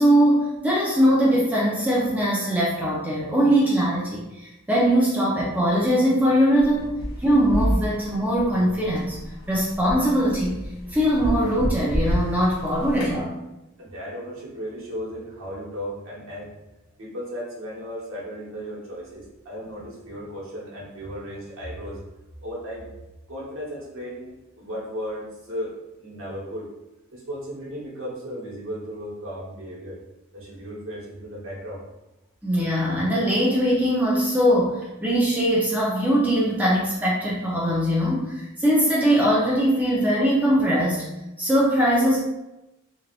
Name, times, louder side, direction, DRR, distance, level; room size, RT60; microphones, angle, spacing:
voice 1, 0.0-6.9 7.2-9.2 9.5-13.4 32.4-42.2, equal, 10° right, -5 dB, 0.4 m, -21 dB
sound 1, 6.6-13.2, equal, 70° left, 0.8 m, -29 dB
voice 2, 13.8-16.5 17.0-22.0 22.4-22.9 23.3-26.7 27.1-30.0 30.3-31.8, equal, 65° right, -5 dB, 1.0 m, -35 dB
3.3 x 2.3 x 2.3 m, 0.96 s
head